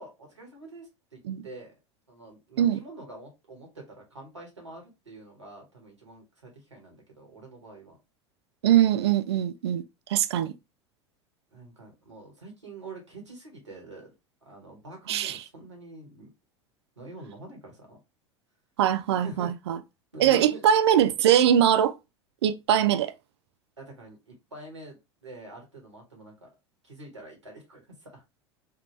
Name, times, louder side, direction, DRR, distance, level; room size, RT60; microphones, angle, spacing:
voice 1, 0.0-1.7 2.1-8.0 11.5-14.1 14.4-16.3 17.0-18.0 19.2-19.5 20.1-20.6 23.8-26.5 26.8-28.2, right 2 dB, 85° right, 1.5 m, -46 dB
voice 2, 8.6-9.8 10.1-10.5 15.1-15.4 18.8-19.8 20.2-21.9 22.4-23.1, right 10 dB, 65° right, 0.4 m, -22 dB
3.7 x 2.3 x 3.0 m
figure-of-eight pair, 75°, 15 cm